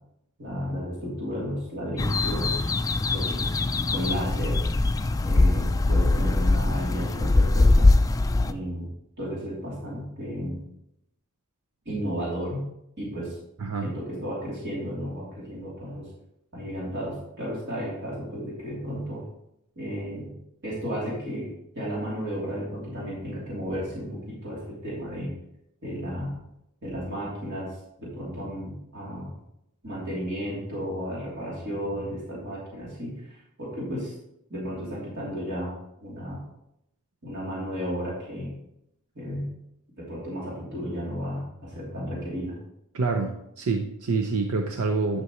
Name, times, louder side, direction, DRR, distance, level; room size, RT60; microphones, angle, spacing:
voice 1, 0.4-2.7 3.1-3.5 3.9-4.6 5.2-7.9 8.4-8.9 9.2-10.6 11.8-12.6 13.0-13.4 13.8-16.1 16.5-19.2 19.7-20.3 20.6-25.3 25.8-26.4 26.8-27.7 28.0-29.3 29.8-34.1 34.5-35.7 36.0-36.4 37.2-38.5 39.1-39.5 40.0-42.6, equal, 55° right, -7 dB, 3.1 m, -33 dB
sound 1, 2.0-8.5, left 2 dB, 15° left, 0.3 m, -22 dB
voice 2, 13.6-13.9 42.9-45.2, right 4 dB, 75° right, 4 dB, 0.6 m, -27 dB
11.0 x 6.1 x 3.1 m, 0.79 s
head